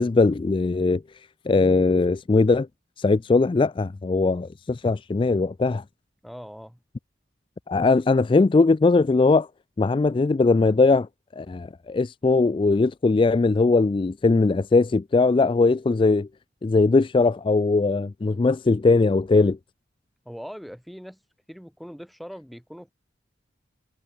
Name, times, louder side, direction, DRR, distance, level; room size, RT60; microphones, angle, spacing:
voice 1, 0.0-2.7 3.0-5.8 7.7-9.5 9.8-11.1 11.3-16.3 16.6-19.6, left 3 dB, 30° left, 0.3 m, -20 dB
voice 2, 6.2-6.8 20.2-21.2 21.5-22.9, equal, ahead, 2.7 m, -41 dB
head